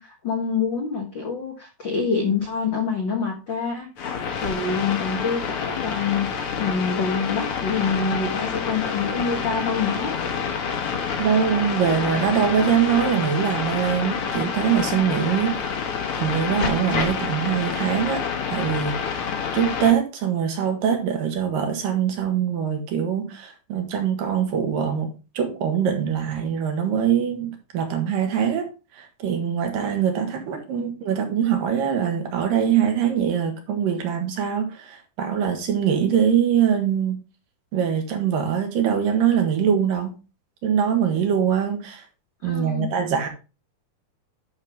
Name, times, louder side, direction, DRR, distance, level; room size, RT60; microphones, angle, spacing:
voice 1, 0.0-10.1 30.7-30.8 42.4-42.9, left 5 dB, 70° left, 1.0 m, -26 dB
sound 1, 4.0-19.9, left 6 dB, 55° left, 1.6 m, -28 dB
voice 2, 11.2-15.8 16.2-18.2 18.5-19.2 19.5-37.2 37.7-40.2 40.6-42.0 42.4-43.3, right 8 dB, 65° right, 3.1 m, -23 dB
10.5 x 5.9 x 3.6 m
omnidirectional pair, 4.4 m